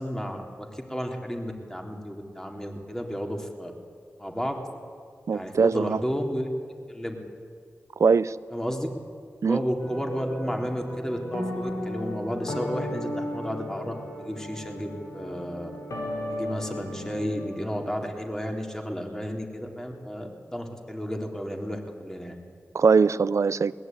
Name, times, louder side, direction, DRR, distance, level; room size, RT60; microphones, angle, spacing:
voice 1, 0.0-3.7 4.2-4.5 5.3-6.5 6.9-7.2 8.5-8.9 9.4-15.7 16.3-22.4, equal, 10° left, 2 dB, 3.6 m, -32 dB
voice 2, 5.3-6.0 8.0-8.4 9.4-9.6 22.7-23.7, right 5 dB, 65° right, 17 dB, 0.6 m, -21 dB
sound 1, 9.8-18.2, left 1 dB, 80° left, 5.0 m, -35 dB
21.0 x 18.5 x 9.3 m, 2.1 s
cardioid pair, 45°, 5 cm